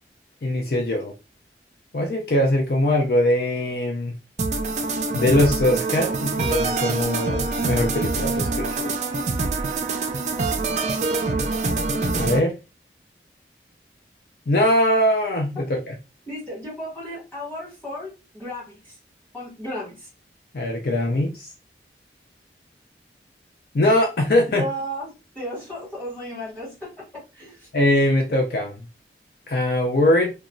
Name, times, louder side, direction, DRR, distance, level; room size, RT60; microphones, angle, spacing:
voice 1, 0.4-1.1 1.9-4.1 5.1-8.9 12.2-12.6 14.5-15.9 20.5-21.5 23.7-24.6 27.7-28.7 29.5-30.3, left 1 dB, 55° left, 0.5 m, -21 dB
sound 1, 4.4-12.4, right 3 dB, 40° right, 0.4 m, -25 dB
voice 2, 16.3-18.9 19.3-20.1 24.5-25.1 25.3-26.9 27.3-27.7, equal, 10° left, 1.7 m, -34 dB
3.0 x 2.2 x 2.5 m
head